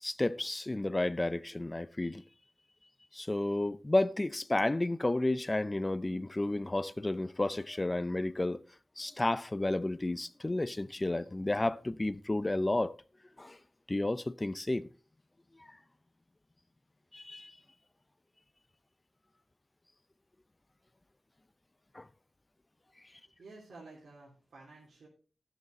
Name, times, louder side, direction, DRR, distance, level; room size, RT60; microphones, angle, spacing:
voice 1, 0.0-2.2 3.1-8.6 9.0-12.9 13.4-13.6 13.9-14.9 17.1-17.5 21.9-22.0, left 2 dB, 20° left, 0.5 m, -31 dB
voice 2, 23.0-25.1, right 3 dB, 85° right, 3.3 m, -53 dB
12.0 x 8.0 x 4.2 m
wide cardioid pair, 120°, 0 cm